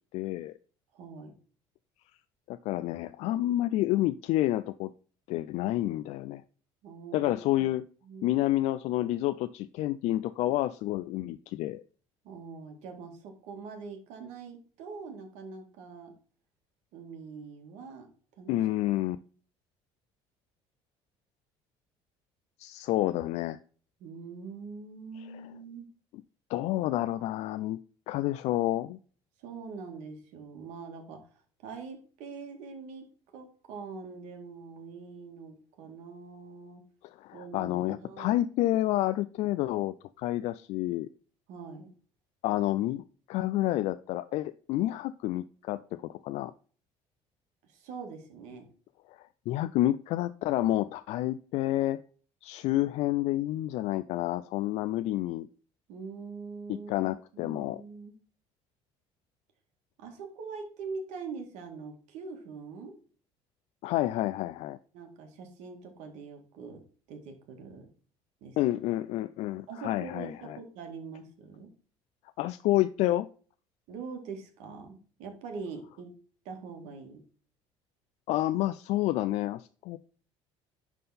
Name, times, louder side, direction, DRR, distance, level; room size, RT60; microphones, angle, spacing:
voice 1, 0.1-0.5 2.5-4.9 5.3-6.4 7.1-7.8 8.2-11.8 18.5-19.2 22.6-23.6 26.5-27.8 28.1-29.0 37.0-41.1 42.4-46.5 49.1-52.0 52.4-55.5 56.7-57.8 63.8-64.8 68.6-70.6 72.4-73.3 78.3-80.0, left 15 dB, 70° left, 12 dB, 0.4 m, -29 dB
voice 2, 0.9-1.3 6.8-7.3 8.0-8.4 12.2-16.1 16.9-18.1 18.4-18.6 24.0-25.9 29.4-31.3 31.6-33.1 33.3-36.8 37.3-38.4 41.5-41.9 47.7-48.7 55.9-58.2 60.0-63.0 64.9-67.9 68.4-68.6 69.7-71.7 73.9-76.1 76.5-77.2, right 5 dB, 80° right, 4 dB, 2.0 m, -43 dB
11.0 x 3.8 x 4.2 m, 0.41 s
cardioid pair, 115°, 12 cm